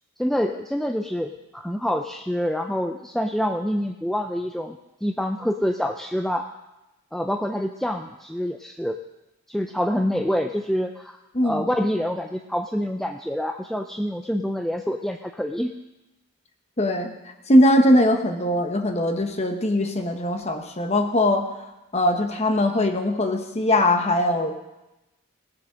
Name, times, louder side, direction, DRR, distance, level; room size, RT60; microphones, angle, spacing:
voice 1, 0.2-6.5 7.1-9.0 9.5-11.2 11.4-15.8, equal, ahead, 5 dB, 0.4 m, -26 dB
voice 2, 16.8-21.5 21.9-24.5, left 1 dB, 30° left, 5 dB, 1.0 m, -21 dB
17.5 x 7.5 x 6.4 m, 1.0 s
head